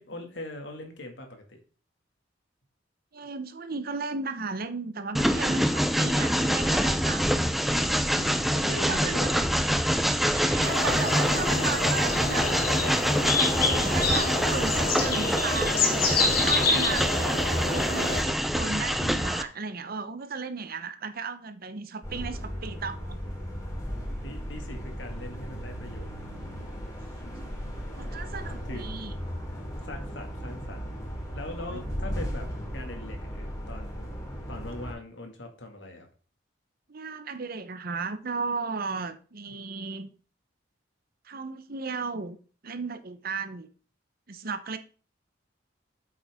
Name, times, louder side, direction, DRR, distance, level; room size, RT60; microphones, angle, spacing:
voice 1, 0.0-1.6 8.2-9.5 11.2-11.9 12.3-13.0 24.2-26.1 27.2-28.2 28.6-28.8 29.5-31.0 31.3-34.1 34.5-36.1 39.5-39.6, left 1 dB, 70° left, 4 dB, 2.2 m, -41 dB
voice 2, 3.1-7.4 8.7-9.1 9.4-9.5 10.3-12.5 13.6-17.4 17.7-23.2 27.9-29.1 31.7-31.8 36.9-40.1 41.2-42.4 42.6-43.7 44.3-44.8, right 4 dB, 55° right, 11 dB, 0.9 m, -35 dB
Train, 5.1-19.4, equal, ahead, 0.6 m, -25 dB
sound 1, 10.6-18.2, left 3 dB, 55° left, 2.6 m, -27 dB
sound 2, 22.0-34.9, equal, 20° left, 3.1 m, -36 dB
8.2 x 7.8 x 3.6 m, 0.38 s
head